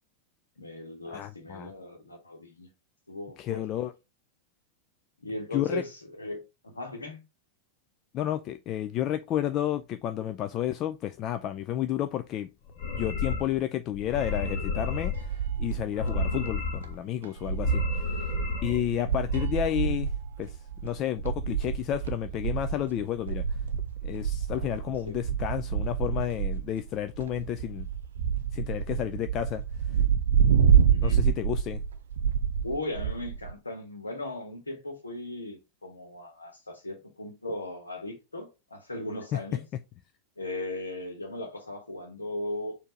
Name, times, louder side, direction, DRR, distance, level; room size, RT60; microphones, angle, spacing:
voice 1, 0.6-2.7 3.1-3.7 5.2-7.2 18.8-19.1 24.5-25.2 30.9-31.2 32.6-39.6 40.4-42.8, left 1 dB, 80° left, 1.3 m, -38 dB
voice 2, 1.1-1.7 3.4-3.9 5.5-5.8 8.1-12.5 12.9-18.3 18.6-20.1 20.4-20.6 20.8-23.4 24.0-27.9 28.5-29.6 29.9-30.0 31.0-31.8 39.3-39.4, left 11 dB, 35° left, 0.3 m, -31 dB
sound 1, 12.7-13.6 13.9-15.3 15.8-17.0 17.4-18.8 19.1-19.5, left 4 dB, 50° left, 1.1 m, -32 dB
sound 2, 14.5-16.5 16.8-16.9 17.2-33.5, right 7 dB, 65° right, 0.5 m, -28 dB
4.4 x 2.7 x 4.4 m
figure-of-eight pair, 90°, 0 cm